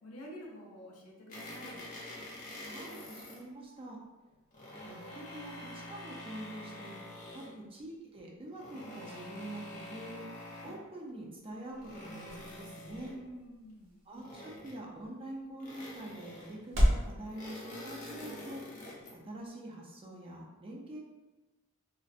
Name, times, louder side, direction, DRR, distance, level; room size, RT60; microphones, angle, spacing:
voice 1, 0.0-1.9 7.4-7.6 13.1-14.0, equal, 85° left, -1 dB, 0.5 m, -49 dB
sound 1, 1.3-3.4 4.3-7.6 8.5-10.9 11.5-13.3 14.1-15.0 15.6-16.7 17.2-19.2, left 1 dB, 35° left, 0.6 m, -46 dB
voice 2, 2.6-4.0 4.9-6.9 7.3-13.1 14.1-18.6 19.1-21.0, right 1 dB, 25° right, -2 dB, 0.4 m, -45 dB
sound 2, 10.8-17.1, equal, 75° right, 0.7 m, -35 dB
2.5 x 2.0 x 2.4 m, 1.1 s
head